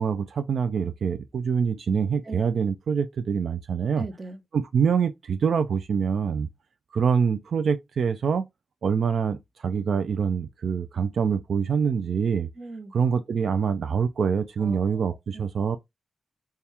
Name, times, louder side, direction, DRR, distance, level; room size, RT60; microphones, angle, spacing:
voice 1, 0.0-4.0 4.5-6.5 6.9-8.5 8.8-12.5 12.9-15.8, right 6 dB, 70° right, 0.3 m, -25 dB
voice 2, 4.0-4.4 12.5-12.9 14.6-15.4, right 3 dB, 30° right, 0.9 m, -39 dB
4.2 x 2.3 x 3.4 m
wide cardioid pair, 100°, 0 cm